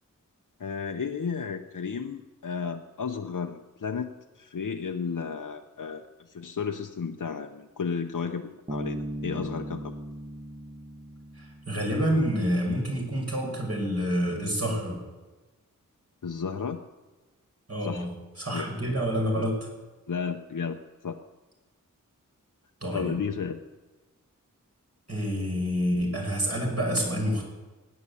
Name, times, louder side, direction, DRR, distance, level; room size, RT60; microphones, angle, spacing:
voice 1, 0.6-9.9 16.2-16.8 17.8-18.1 18.5-18.7 19.3-19.5 20.1-21.2 22.9-23.6, left 6 dB, 70° left, 4 dB, 0.8 m, -33 dB
Bass guitar, 8.7-12.2, right 1 dB, 25° right, 1.3 m, -38 dB
voice 2, 11.4-15.0 17.7-18.1 18.4-19.6 22.8-23.2 25.1-27.4, equal, 50° right, -1 dB, 6.2 m, -28 dB
17.5 x 9.7 x 8.4 m, 1.2 s
wide cardioid pair, 70°, 33 cm